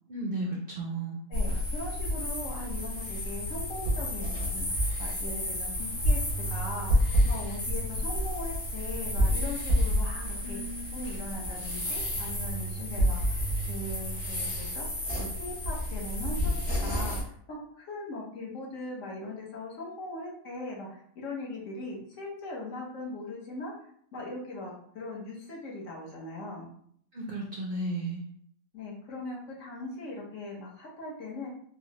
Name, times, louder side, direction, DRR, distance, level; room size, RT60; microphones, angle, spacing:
voice 1, 0.1-1.2 10.4-11.1 27.1-28.2, right 2 dB, 55° right, -3 dB, 0.6 m, -34 dB
sound 1, 1.3-17.2, equal, 85° left, 1.8 m, -29 dB
voice 2, 1.3-6.2 6.5-10.6 10.9-14.9 15.2-16.6 16.8-23.7 24.1-26.7 28.7-31.5, left 2 dB, 65° left, -3 dB, 1.2 m, -40 dB
4.5 x 2.0 x 3.0 m, 0.64 s
omnidirectional pair, 1.5 m